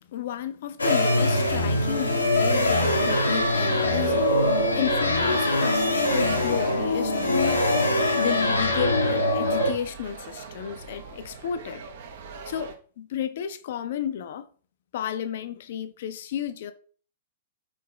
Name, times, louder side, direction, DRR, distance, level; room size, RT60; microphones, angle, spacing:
voice 1, 0.0-7.8 8.2-11.8 12.5-14.5 14.9-16.7, left 9 dB, 55° left, 0.5 m, -32 dB
sound 1, 0.8-9.7, left 1 dB, 80° left, 0.9 m, -23 dB
sound 2, 1.1-12.8, right 5 dB, 55° right, 0.7 m, -41 dB
4.2 x 3.8 x 3.2 m
figure-of-eight pair, 105°, 0 cm